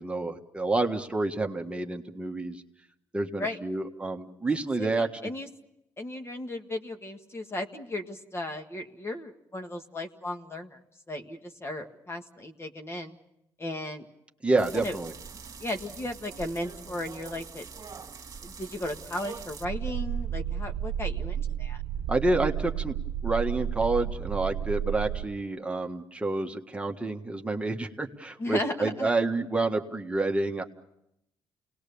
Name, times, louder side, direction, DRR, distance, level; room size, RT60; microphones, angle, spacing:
voice 1, 0.0-2.6 3.1-5.1 14.4-15.1 22.1-23.0 23.2-30.6, right 2 dB, 15° right, 2 dB, 1.6 m, -28 dB
voice 2, 4.8-5.5 6.0-10.8 11.1-13.2 13.6-14.1 14.5-14.9 15.6-17.6 18.4-21.8 28.4-29.1, left 1 dB, 30° left, 5 dB, 1.7 m, -35 dB
sound 1, 14.6-19.7, right 5 dB, 40° right, 2.1 m, -44 dB
sound 2, 19.6-25.3, right 10 dB, 75° right, 0.9 m, -32 dB
28.5 x 19.0 x 7.0 m, 0.84 s
cardioid pair, 90°, 9 cm